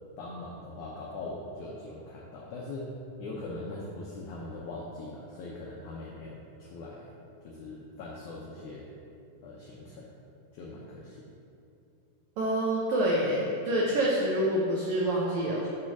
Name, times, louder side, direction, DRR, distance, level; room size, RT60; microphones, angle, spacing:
voice 1, 0.2-2.9 3.2-7.1 7.4-8.9 9.4-10.1 10.5-11.2, left 2 dB, 80° left, -4 dB, 1.7 m, -41 dB
voice 2, 12.4-15.7, right 1 dB, 90° right, -4 dB, 1.6 m, -27 dB
8.9 x 3.3 x 5.9 m, 2.6 s
omnidirectional pair, 4.4 m